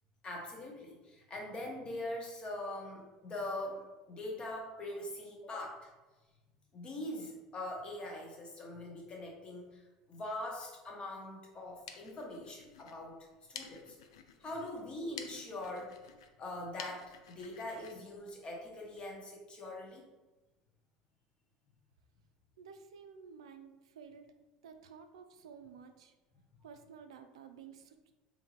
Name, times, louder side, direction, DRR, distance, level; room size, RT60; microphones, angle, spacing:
voice 1, 0.2-5.9 6.7-13.2 13.5-14.0 14.4-15.9 16.4-20.0, left 1 dB, 35° left, -1 dB, 1.0 m, -42 dB
sound 1, 11.5-19.1, left 7 dB, 80° left, 0.3 m, -53 dB
voice 2, 22.6-24.3 24.6-26.1 26.6-28.0, right 6 dB, 85° right, 7 dB, 0.3 m, -53 dB
3.6 x 2.7 x 3.0 m, 1.2 s
hypercardioid pair, 85°, 3 cm